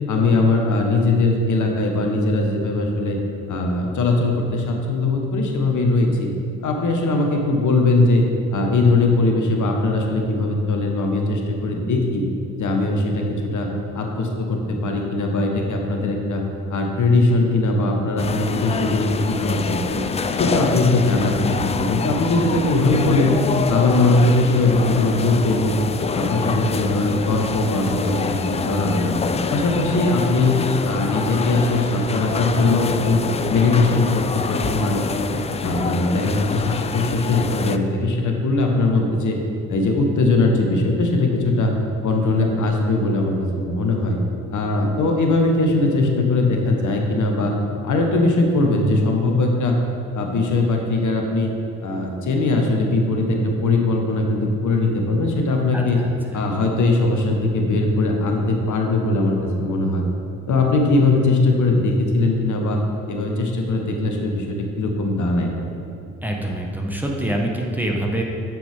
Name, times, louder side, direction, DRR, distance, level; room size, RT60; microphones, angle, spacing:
voice 1, 0.1-3.2 3.5-6.3 6.6-8.2 8.5-12.2 12.6-13.7 13.9-16.4 16.7-20.0 20.3-23.4 23.7-25.8 26.1-29.1 29.5-30.6 30.8-33.2 33.5-35.3 35.6-39.4 39.7-41.7 42.0-44.2 44.5-47.5 47.8-49.8 50.1-51.5 51.8-56.0 56.3-60.0 60.5-62.8 63.1-65.5, left 2 dB, 50° left, 2 dB, 1.4 m, -20 dB
sound 1, 18.2-37.8, left 5 dB, 15° left, 0.4 m, -26 dB
voice 2, 55.7-56.4 66.2-68.2, right 1 dB, 5° right, -1 dB, 1.3 m, -26 dB
9.9 x 7.5 x 3.6 m, 2.6 s
figure-of-eight pair, 45°, 39 cm